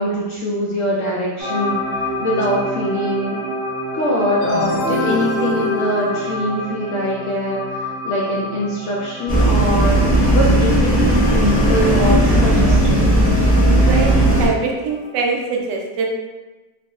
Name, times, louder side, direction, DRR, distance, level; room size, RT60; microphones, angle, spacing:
voice 1, 0.0-3.4 3.9-13.3, equal, 65° left, -5 dB, 0.7 m, -23 dB
sound 1, 1.4-15.4, left 1 dB, 55° right, 1.5 m, -30 dB
sound 2, 4.4-7.1, left 2 dB, 90° left, 1.2 m, -24 dB
sound 3, 9.3-14.5, right 1 dB, 10° left, 0.5 m, -15 dB
voice 2, 13.7-16.1, right 4 dB, 85° right, 1 dB, 1.2 m, -23 dB
3.8 x 2.0 x 3.5 m, 1.2 s
omnidirectional pair, 1.8 m